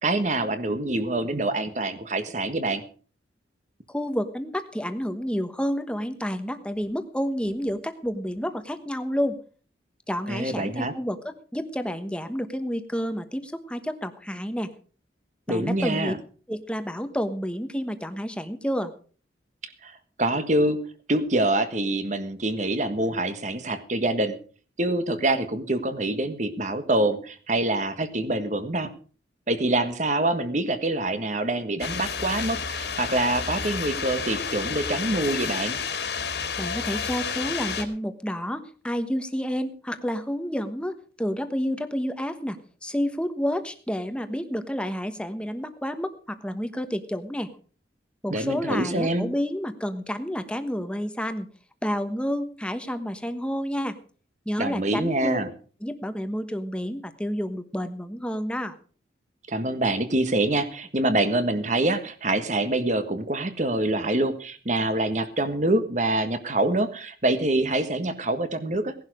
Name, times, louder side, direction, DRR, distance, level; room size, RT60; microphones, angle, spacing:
voice 1, 0.0-2.8 10.3-10.9 15.5-16.2 19.8-20.8 21.1-24.4 24.8-28.9 29.5-35.8 48.3-49.3 54.6-55.5 59.5-68.9, right 2 dB, 40° right, 10 dB, 1.5 m, -25 dB
voice 2, 3.9-9.4 10.1-14.7 15.5-16.1 16.5-18.9 36.6-47.5 48.2-51.5 51.8-54.0 54.4-55.4 55.8-58.7, equal, 5° left, 9 dB, 1.2 m, -30 dB
sound 1, 31.8-37.8, left 6 dB, 65° left, 2.6 m, -30 dB
18.0 x 11.0 x 5.0 m, 0.41 s
head